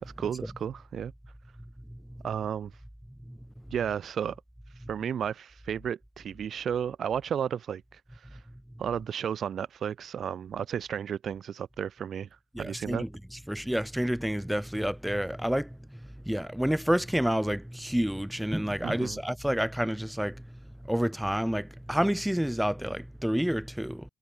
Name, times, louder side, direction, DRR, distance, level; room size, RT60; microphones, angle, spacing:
voice 1, 0.0-1.1 2.2-2.7 3.7-4.4 4.9-8.4 8.8-12.3 12.6-13.1 18.8-19.2, right 8 dB, 60° right, 2.4 m, -33 dB
voice 2, 12.5-13.1 13.5-15.7 16.3-20.3 20.8-24.0, equal, 5° right, 5.9 m, -29 dB
cardioid pair, 90°, 0 cm